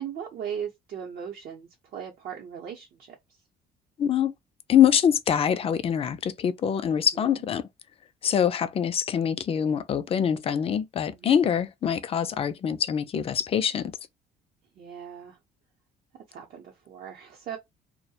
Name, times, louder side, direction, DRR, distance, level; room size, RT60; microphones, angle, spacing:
voice 1, 0.0-3.2 7.0-7.4 11.1-11.4 14.7-15.4 16.3-17.6, right 8 dB, 55° right, 0.7 m, -38 dB
voice 2, 4.0-4.3 4.7-7.7 8.2-13.9, left 8 dB, 35° left, 0.4 m, -24 dB
2.3 x 2.1 x 2.7 m
cardioid pair, 110°, 17 cm